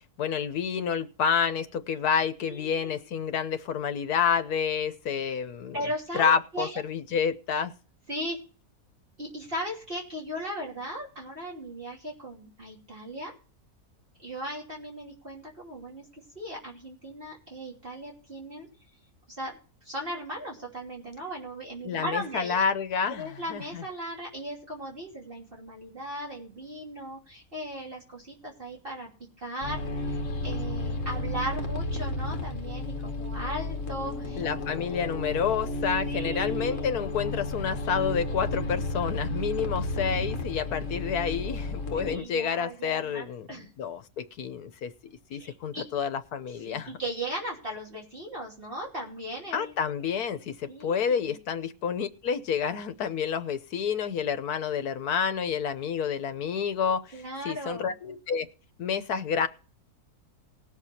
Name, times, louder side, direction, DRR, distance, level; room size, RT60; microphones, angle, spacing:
voice 1, 0.2-5.8 6.1-7.7 21.8-23.8 34.4-43.5 43.8-44.9 45.3-46.9 49.5-58.5 58.8-59.5, left 7 dB, 85° left, 1.4 m, -29 dB
voice 2, 2.4-3.0 5.7-6.8 8.1-8.4 9.2-13.3 14.2-16.0 16.3-18.7 19.3-22.6 23.1-29.1 29.4-34.4 36.0-37.1 41.9-43.7 45.3-45.8 46.6-49.7 50.7-51.4 57.1-57.9, right 1 dB, 35° right, 3.1 m, -37 dB
sound 1, 29.6-42.2, left 2 dB, 55° left, 1.5 m, -32 dB
19.0 x 6.7 x 4.3 m
omnidirectional pair, 1.6 m